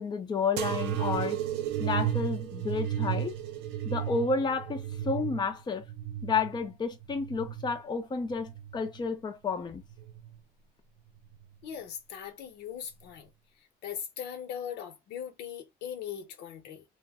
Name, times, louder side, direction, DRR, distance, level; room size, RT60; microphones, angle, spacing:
voice 1, 0.0-1.4 1.8-3.3 3.8-5.8 6.2-9.8, left 4 dB, 25° left, 0.6 m, -31 dB
sound 1, 0.6-7.8 8.3-9.1 9.8-10.4 11.3-11.4, right 11 dB, 85° right, 0.6 m, -34 dB
voice 2, 11.6-13.3 13.8-16.8, left 9 dB, 85° left, 0.9 m, -39 dB
2.5 x 2.2 x 3.5 m
cardioid pair, 110°, 17 cm